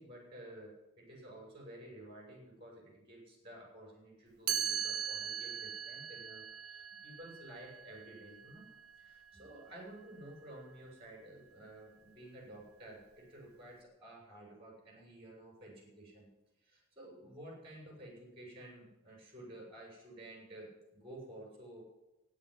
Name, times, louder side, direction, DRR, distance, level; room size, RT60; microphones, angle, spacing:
voice 1, 0.0-8.7 9.0-16.3 16.6-21.8, right 1 dB, 25° right, -2 dB, 6.8 m, -52 dB
Chime, 4.5-10.3, right 9 dB, 75° right, 0.9 m, -40 dB
12.5 x 10.0 x 9.7 m, 0.97 s
head